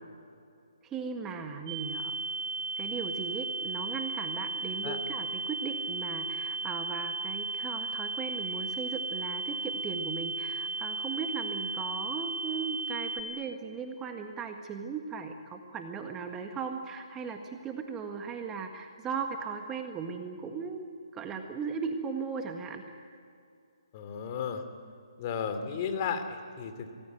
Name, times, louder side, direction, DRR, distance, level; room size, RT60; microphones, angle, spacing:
voice 1, 0.8-2.2 2.8-20.9 21.1-22.8, right 5 dB, 15° right, 5 dB, 1.7 m, -37 dB
sound 1, 1.7-13.2, right 3 dB, 30° right, 3.1 m, -35 dB
voice 2, 23.9-24.6 25.2-26.9, left 6 dB, 35° left, 7 dB, 2.8 m, -34 dB
25.5 x 19.5 x 9.1 m, 2.4 s
hypercardioid pair, 145°, 3 cm